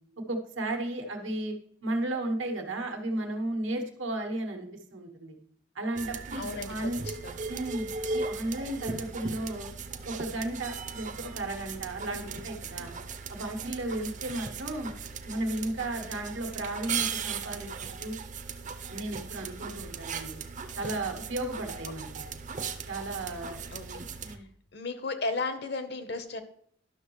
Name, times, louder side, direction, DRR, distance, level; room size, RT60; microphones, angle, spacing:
voice 1, 0.3-1.5 1.8-5.4 5.7-7.0 7.5-7.9 8.1-9.7 10.0-12.9 13.3-14.9 15.2-18.1 18.9-20.4 20.7-22.2 22.9-24.5, right 1 dB, 90° right, 3 dB, 1.4 m, -34 dB
sound 1, 5.9-24.4, right 5 dB, 40° right, 0.6 m, -38 dB
voice 2, 6.4-7.4 23.7-23.8 24.2-24.4 24.7-26.4, left 3 dB, 60° left, 9 dB, 0.9 m, -35 dB
11.5 x 6.3 x 3.1 m, 0.65 s
head